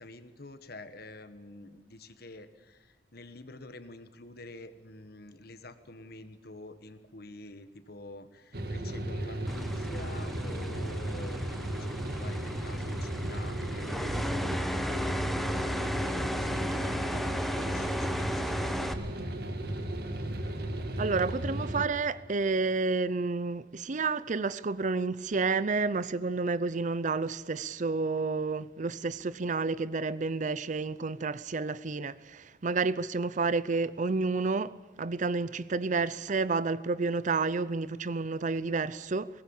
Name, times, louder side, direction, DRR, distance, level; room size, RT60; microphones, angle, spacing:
voice 1, 0.0-15.7 16.2-18.9, left 2 dB, 55° left, 1.5 m, -48 dB
sound 1, 8.5-21.8, right 1 dB, 60° right, 2.0 m, -35 dB
sound 2, 9.5-18.9, equal, ahead, 1.1 m, -35 dB
voice 2, 21.0-39.3, right 4 dB, 45° right, 0.5 m, -30 dB
21.0 x 19.0 x 7.2 m
head